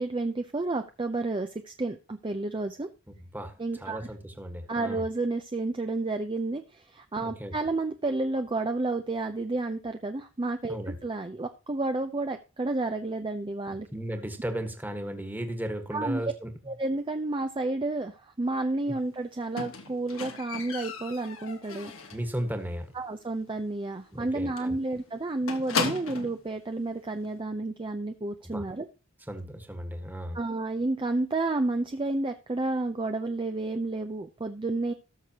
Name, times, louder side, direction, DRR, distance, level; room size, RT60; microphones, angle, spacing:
voice 1, 0.0-2.9 3.6-4.0 4.7-10.8 11.0-13.9 15.9-16.3 16.7-21.9 22.9-28.9 30.3-34.9, right 2 dB, 25° right, 7 dB, 0.6 m, -31 dB
voice 2, 3.3-5.0 7.2-7.5 10.7-11.0 13.9-16.5 22.1-22.9 24.1-24.7 28.4-28.6 29.3-30.4, right 1 dB, 10° right, 6 dB, 1.5 m, -35 dB
Squeak, 19.6-22.3 22.7-23.1 23.3-23.4 23.8-23.9 24.2-24.3 24.6-26.4 27.2-27.3, left 5 dB, 90° left, 1.6 m, -35 dB
18.0 x 6.4 x 2.9 m, 0.32 s
head